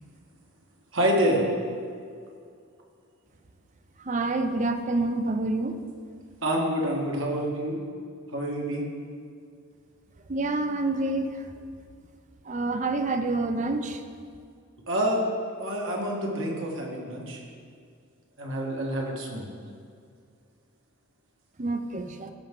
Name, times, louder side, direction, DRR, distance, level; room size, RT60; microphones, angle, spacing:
voice 1, 0.9-1.4 6.4-7.8 8.3-8.8 14.9-15.2 15.6-17.4 18.4-19.5, right 1 dB, 60° right, -1 dB, 1.6 m, -27 dB
voice 2, 4.1-5.8 10.3-11.3 12.5-14.0 21.6-22.3, right 2 dB, 35° right, 8 dB, 0.5 m, -27 dB
15.5 x 5.6 x 3.8 m, 2.3 s
head